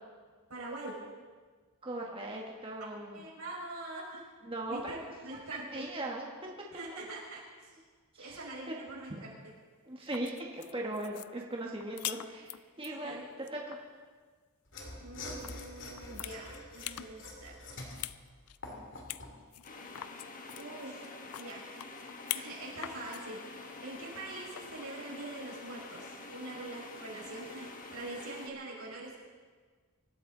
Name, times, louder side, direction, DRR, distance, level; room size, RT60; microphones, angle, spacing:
voice 1, 0.5-0.9 2.9-4.2 4.7-5.0 5.2-5.9 6.7-7.7 8.2-9.3 12.1-12.2 13.0-13.2 15.0-17.5 20.5-21.1 21.4-21.6 22.3-29.2, right 2 dB, 85° right, -3 dB, 5.4 m, -44 dB
voice 2, 1.8-3.2 4.4-5.0 5.3-5.4 5.7-6.5 6.9-7.0 8.1-8.8 9.1-9.2 9.9-12.5 12.8-13.8, right 1 dB, 25° right, -1 dB, 1.4 m, -39 dB
sound 1, 9.9-12.9 13.3-13.8 15.4-15.6 15.9-17.1 17.5-18.2 18.5-18.6 19.1-19.2 19.5-22.5 22.8-23.2 24.5-24.9, left 14 dB, 80° left, 0.4 m, -42 dB
Mechanisms / Sawing, 14.7-19.4, left 2 dB, 55° left, 2.3 m, -46 dB
sound 2, 19.6-28.5, left 3 dB, 35° left, 1.4 m, -47 dB
24.0 x 13.0 x 3.9 m, 1.5 s
head